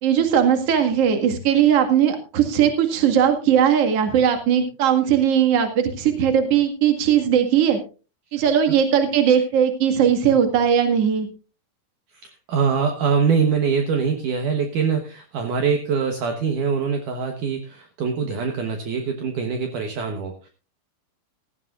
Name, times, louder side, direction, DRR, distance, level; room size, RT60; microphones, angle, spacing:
voice 1, 0.0-7.8 8.3-11.3, right 8 dB, 45° right, 6 dB, 2.5 m, -19 dB
voice 2, 12.2-20.5, right 6 dB, 65° right, 5 dB, 2.5 m, -23 dB
17.0 x 15.0 x 2.5 m, 0.33 s
omnidirectional pair, 4.5 m